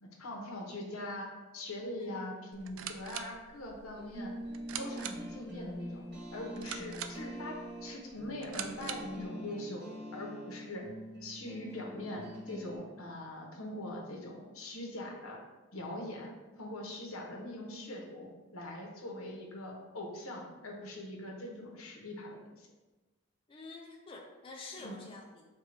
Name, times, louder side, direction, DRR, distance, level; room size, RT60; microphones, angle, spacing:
voice 1, 0.0-1.3 1.5-4.3 4.8-6.0 6.3-9.8 10.1-10.8 11.2-15.4 15.7-16.3 16.6-22.7 24.8-25.0, left 1 dB, 85° left, 0 dB, 1.0 m, -42 dB
sound 1, 2.5-9.2, right 8 dB, 75° right, 0.4 m, -45 dB
sound 2, 3.9-12.8, equal, 50° right, 1.0 m, -45 dB
voice 2, 23.5-25.4, left 3 dB, 25° left, 0 dB, 0.4 m, -48 dB
4.5 x 2.3 x 4.8 m, 1.2 s
head